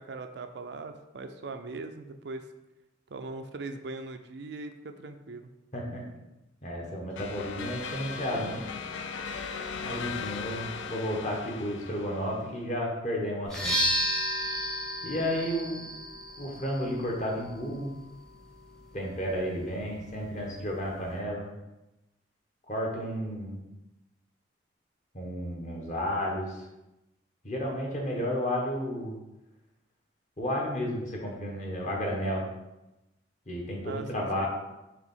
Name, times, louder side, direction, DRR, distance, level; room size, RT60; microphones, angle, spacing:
voice 1, 0.0-2.4 3.1-5.5 33.8-34.5, right 3 dB, 60° right, 7 dB, 0.5 m, -40 dB
voice 2, 5.7-6.0 6.6-8.6 9.7-13.8 15.0-15.8 16.4-17.9 18.9-21.5 22.7-23.6 25.1-26.6 27.4-29.2 30.4-32.5 33.5-34.5, equal, 40° left, -1 dB, 1.2 m, -32 dB
sound 1, 7.2-12.6, left 5 dB, 80° left, 0.5 m, -38 dB
sound 2, 13.4-21.2, equal, 5° left, 0.8 m, -34 dB
4.9 x 3.4 x 5.6 m, 0.97 s
head